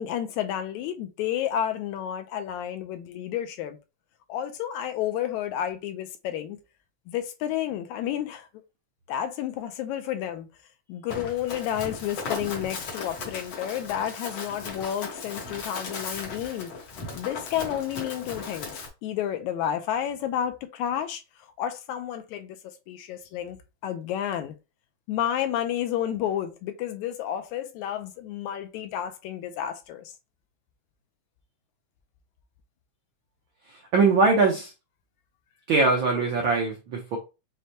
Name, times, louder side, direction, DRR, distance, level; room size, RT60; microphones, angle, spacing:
voice 1, 0.0-3.8 4.3-6.6 7.1-8.5 9.1-10.5 10.9-16.7 17.2-18.7 19.0-21.2 21.6-23.6 23.8-24.5 25.1-30.1, left 10 dB, 80° left, 1.9 m, -31 dB
Run, 11.1-18.9, left 4 dB, 60° left, 1.4 m, -37 dB
voice 2, 33.9-34.7 35.7-37.2, right 3 dB, 85° right, 1.1 m, -21 dB
6.4 x 2.2 x 2.7 m
omnidirectional pair, 3.4 m